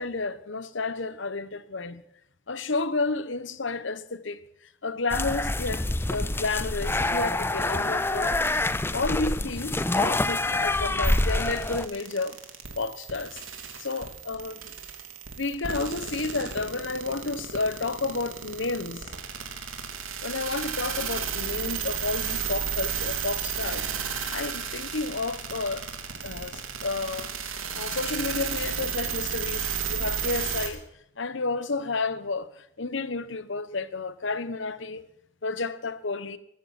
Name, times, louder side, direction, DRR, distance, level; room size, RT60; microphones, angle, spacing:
voice 1, 0.0-2.0 2.5-4.4 4.8-8.4 8.9-12.4 12.8-14.7 15.4-19.0 20.2-23.9 24.3-25.8 26.2-30.8 31.2-35.1 35.4-36.4, left 3 dB, 65° left, 1.0 m, -31 dB
sound 1, 5.1-11.9, left 2 dB, 10° left, 0.5 m, -26 dB
sound 2, 11.0-30.7, right 7 dB, 80° right, 3.1 m, -33 dB
20.5 x 14.5 x 4.2 m
head